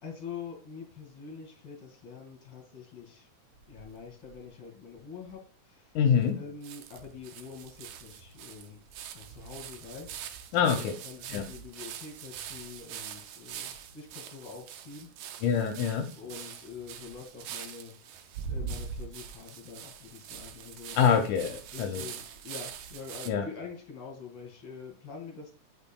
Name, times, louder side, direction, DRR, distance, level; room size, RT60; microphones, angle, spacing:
voice 1, 0.0-3.3 3.7-6.0 6.4-8.8 9.1-15.1 16.1-21.0 21.7-25.5, left 5 dB, 50° left, 2 dB, 2.7 m, -45 dB
sound 1, 3.5-4.5 5.0-5.1 5.3-5.4 6.2-6.3 6.6-23.3, right 7 dB, 75° right, 1.7 m, -43 dB
voice 2, 6.0-6.4 10.5-10.9 11.3-11.4 15.4-16.1 21.0-22.0 23.3-23.4, left 7 dB, 80° left, 4 dB, 2.0 m, -25 dB
8.1 x 5.3 x 2.2 m, 0.40 s
omnidirectional pair, 3.4 m